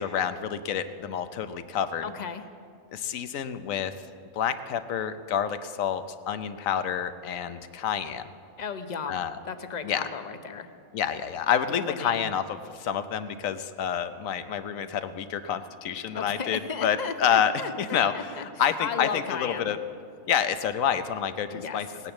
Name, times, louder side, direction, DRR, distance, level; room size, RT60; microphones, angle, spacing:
voice 1, 0.0-2.0 2.9-3.9 4.3-8.3 9.1-9.4 9.8-10.1 10.9-19.8 20.3-21.9, left 8 dB, 75° left, 11 dB, 1.1 m, -28 dB
voice 2, 2.0-2.4 8.6-10.7 11.7-12.2 16.1-18.4 18.8-19.7 21.5-21.8, left 5 dB, 40° left, 8 dB, 0.7 m, -35 dB
18.0 x 9.7 x 7.1 m, 2.4 s
omnidirectional pair, 1.4 m